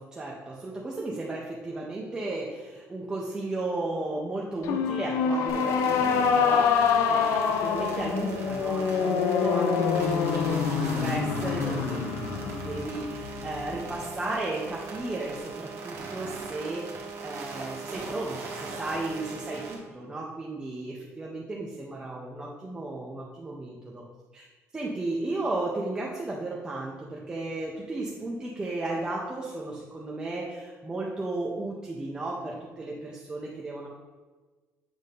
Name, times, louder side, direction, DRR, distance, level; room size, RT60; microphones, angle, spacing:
voice 1, 0.0-24.0 24.3-24.5 24.7-33.9, right 2 dB, 15° right, -4 dB, 0.5 m, -34 dB
sound 1, 4.6-14.0, left 6 dB, 75° left, 0.5 m, -26 dB
sound 2, 5.5-19.8, right 4 dB, 55° right, 1.1 m, -39 dB
7.5 x 2.6 x 5.3 m, 1.3 s
cardioid pair, 180°, 5 cm